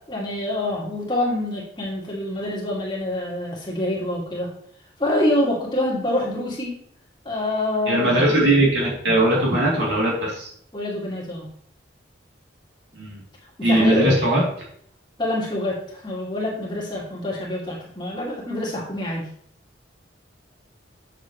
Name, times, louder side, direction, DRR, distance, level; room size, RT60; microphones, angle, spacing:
voice 1, 0.0-4.5 5.0-6.7 7.2-8.1 10.7-11.5 13.6-14.0 15.2-19.3, left 1 dB, 25° left, -4 dB, 2.1 m, -26 dB
voice 2, 7.9-10.5 12.9-13.2 13.6-14.4, right 1 dB, 70° right, -4 dB, 2.9 m, -19 dB
8.2 x 6.6 x 3.1 m, 0.66 s
head